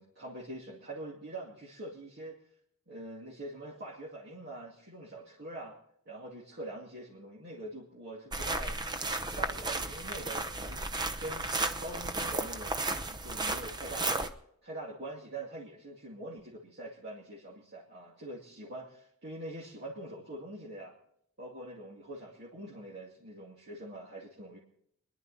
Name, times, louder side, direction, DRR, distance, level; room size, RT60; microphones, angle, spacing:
voice 1, 0.0-2.4 2.9-5.8 6.1-10.9 11.2-11.5 11.8-12.8 13.1-14.3 14.6-20.9 21.4-24.6, right 1 dB, 50° right, -5 dB, 2.3 m, -44 dB
sound 1, 8.3-14.3, right 2 dB, 20° right, 0.8 m, -34 dB
25.0 x 11.0 x 4.1 m, 0.72 s
head